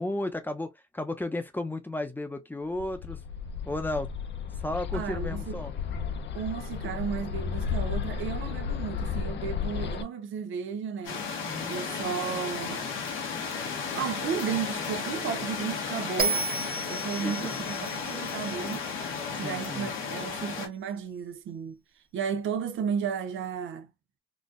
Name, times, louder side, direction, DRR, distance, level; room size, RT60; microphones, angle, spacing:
voice 1, 0.0-3.2 3.7-4.1 4.6-5.7 11.4-11.8 17.2-17.9 19.4-19.9, left 1 dB, 10° left, 0.7 m, -34 dB
Bird, 2.7-10.0, left 6 dB, 60° left, 0.7 m, -33 dB
voice 2, 4.9-5.6 6.3-11.3 11.7-12.9 13.9-16.4 16.9-18.8 19.4-21.8 22.1-23.9, right 7 dB, 80° right, 0.7 m, -33 dB
sound 1, 11.0-20.7, left 5 dB, 85° left, 1.1 m, -34 dB
Bell, 16.2-19.4, right 3 dB, 45° right, 1.3 m, -33 dB
4.1 x 2.5 x 2.5 m
cardioid pair, 90°, 20 cm